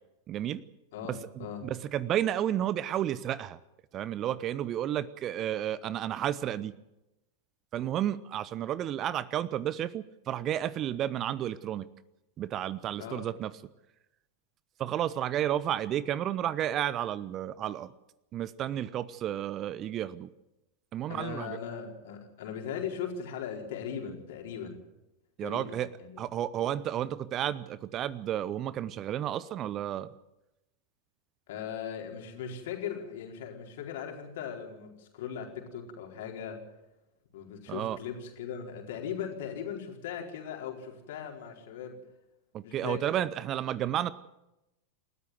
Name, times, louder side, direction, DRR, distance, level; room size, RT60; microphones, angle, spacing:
voice 1, 0.3-0.6 1.1-3.6 3.9-6.7 7.7-11.9 12.4-13.5 14.8-17.9 18.3-20.3 20.9-21.6 25.4-25.9 26.2-30.1 37.7-38.0 42.5-44.1, right 11 dB, 30° right, 19 dB, 0.8 m, -32 dB
voice 2, 0.9-1.7 13.0-13.2 21.1-24.8 25.4-26.2 31.5-36.6 37.3-42.0 42.6-43.0, left 8 dB, 55° left, 2 dB, 4.6 m, -39 dB
28.5 x 13.5 x 7.8 m, 0.94 s
figure-of-eight pair, 90°, 0 cm